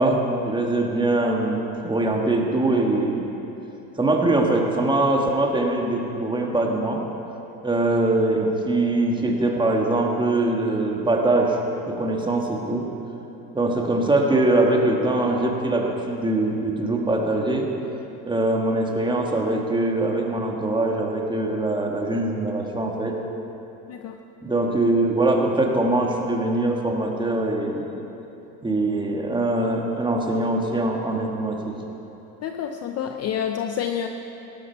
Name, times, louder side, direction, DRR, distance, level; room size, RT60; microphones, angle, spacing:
voice 1, 0.0-3.2 4.0-7.0 7.6-11.6 11.9-12.9 13.5-17.7 18.2-23.1 24.4-27.9 28.6-31.7, right 2 dB, 10° right, 1 dB, 1.6 m, -22 dB
voice 2, 32.4-34.1, left 9 dB, 30° left, 5 dB, 0.6 m, -28 dB
18.5 x 11.5 x 4.6 m, 3.0 s
supercardioid pair, 120°, 49 cm